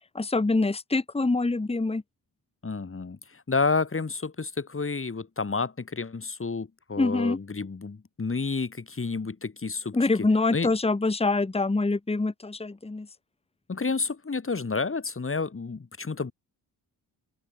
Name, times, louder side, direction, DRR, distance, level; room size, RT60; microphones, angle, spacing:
voice 1, 0.1-2.0 7.0-7.4 9.9-13.1, left 3 dB, 15° left, 1.3 m, -25 dB
voice 2, 2.6-10.3 10.5-10.7 13.7-16.3, left 4 dB, 30° left, 2.6 m, -30 dB
open air
cardioid pair, 60°, 42 cm